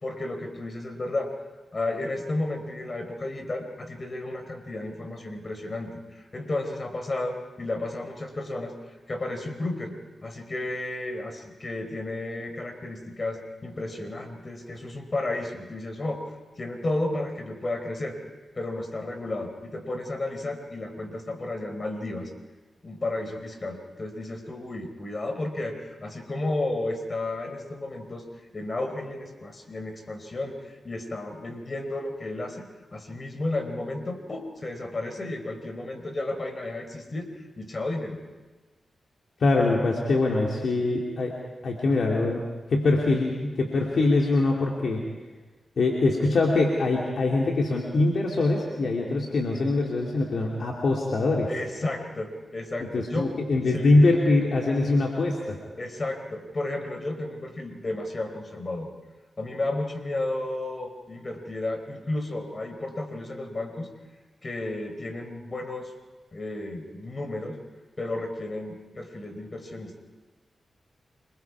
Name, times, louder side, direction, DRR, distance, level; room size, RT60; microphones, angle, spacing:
voice 1, 0.0-1.3 1.7-9.9 10.2-16.3 16.6-18.2 18.5-22.3 22.8-28.2 28.5-32.7 32.9-37.3 37.6-38.2 51.5-53.3 53.7-53.9 55.8-58.9 59.4-63.9 64.4-65.9 66.3-67.6 68.0-70.0, left 2 dB, 45° left, 6 dB, 4.2 m, -32 dB
voice 2, 39.4-41.3 41.6-42.4 42.7-45.0 45.8-51.5 52.8-55.6, left 2 dB, 70° left, -1 dB, 2.9 m, -23 dB
28.0 x 22.5 x 4.8 m, 1.2 s
supercardioid pair, 40°, 0 cm